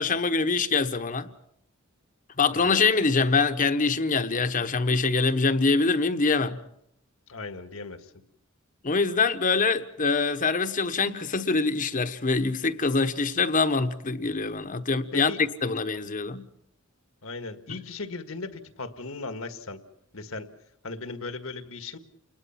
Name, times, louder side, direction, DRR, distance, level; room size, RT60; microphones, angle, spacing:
voice 1, 0.0-1.3 2.4-6.6 8.8-16.5 17.7-17.8, left 4 dB, 40° left, 1.1 m, -24 dB
voice 2, 7.3-8.1 15.1-15.4 17.2-19.8 20.1-20.5 20.8-22.0, left 3 dB, 75° left, 1.7 m, -37 dB
28.5 x 21.0 x 5.8 m
head